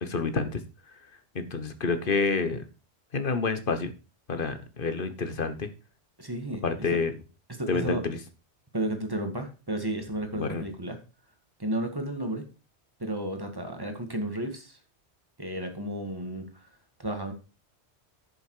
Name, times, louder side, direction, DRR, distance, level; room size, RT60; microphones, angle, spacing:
voice 1, 0.0-0.6 1.3-2.6 3.1-3.9 4.3-5.7 6.6-7.1 7.7-8.2 10.3-10.6, left 4 dB, 50° left, 10 dB, 1.4 m, -28 dB
voice 2, 6.2-7.0 7.5-8.0 8.7-11.0 11.6-12.4 13.0-14.8 15.4-16.7 17.0-17.3, right 1 dB, 20° right, 5 dB, 2.0 m, -33 dB
10.5 x 6.8 x 4.9 m, 0.32 s
omnidirectional pair, 1.1 m